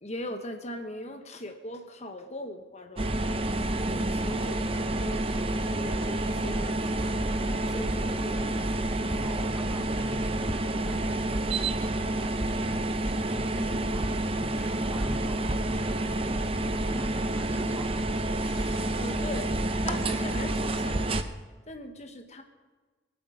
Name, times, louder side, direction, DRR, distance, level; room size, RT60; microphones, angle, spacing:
voice 1, 0.0-3.1 3.9-8.7 18.4-19.5 19.8-21.2 21.7-22.4, left 1 dB, 35° left, 6 dB, 1.1 m, -40 dB
sound 1, 3.0-21.2, right 1 dB, 30° right, 0.7 m, -29 dB
voice 2, 4.3-4.7 9.1-11.2 13.2-16.6 16.9-18.4, right 1 dB, 10° right, 4 dB, 1.1 m, -44 dB
23.0 x 8.0 x 5.1 m, 1.4 s
head